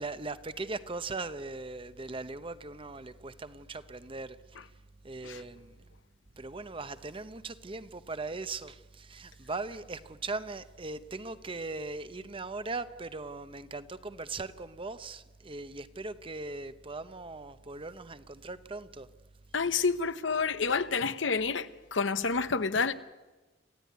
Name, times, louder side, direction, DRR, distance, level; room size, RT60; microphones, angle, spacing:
voice 1, 0.0-4.4 5.0-5.8 6.4-19.1, right 3 dB, 25° right, 0.9 m, -39 dB
voice 2, 19.5-22.9, left 5 dB, 75° left, 1.0 m, -29 dB
27.5 x 15.5 x 9.5 m
head